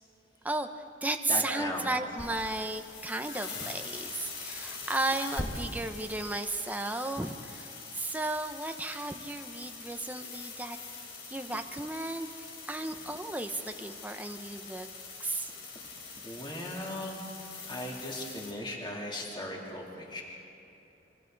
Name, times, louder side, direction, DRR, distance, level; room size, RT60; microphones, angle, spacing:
voice 1, 0.4-10.8 11.3-14.9 15.2-15.5, right 2 dB, 10° right, 5 dB, 0.8 m, -34 dB
voice 2, 1.3-1.9 16.2-17.2 17.7-20.2, left 1 dB, 25° left, -3 dB, 3.2 m, -37 dB
sound 1, 2.1-18.5, left 3 dB, 80° left, 3.8 m, -43 dB
26.0 x 25.0 x 4.0 m, 2.8 s
head